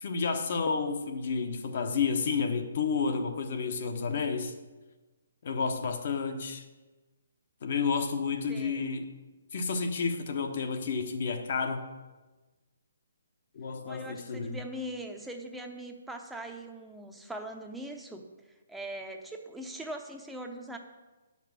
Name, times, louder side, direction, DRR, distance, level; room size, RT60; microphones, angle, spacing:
voice 1, 0.0-4.5 5.4-6.6 7.6-9.1 9.5-11.9 13.5-14.6, left 5 dB, 50° left, 6 dB, 1.1 m, -30 dB
voice 2, 8.5-8.9 13.8-18.2 18.7-20.8, right 1 dB, 5° right, 2 dB, 0.7 m, -41 dB
9.9 x 6.0 x 6.0 m, 1.2 s
hypercardioid pair, 155°, 0 cm